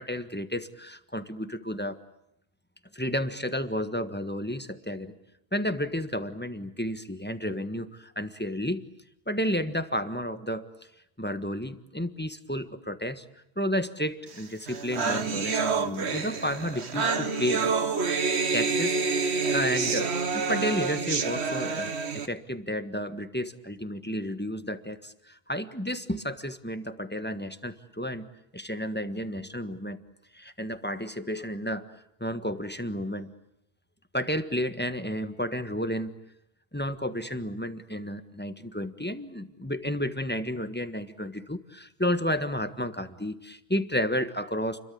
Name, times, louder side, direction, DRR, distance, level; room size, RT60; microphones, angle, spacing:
voice 1, 0.0-2.0 2.9-5.1 5.5-8.9 9.3-10.7 11.2-13.2 13.6-17.6 18.5-28.3 28.5-30.0 30.3-31.9 32.2-33.3 34.1-36.1 36.7-44.8, equal, 10° left, 10 dB, 1.4 m, -32 dB
sound 1, 14.4-14.5 14.7-22.3, right 4 dB, 75° right, 1.7 m, -28 dB
30.0 x 23.0 x 8.6 m, 0.80 s
omnidirectional pair, 1.1 m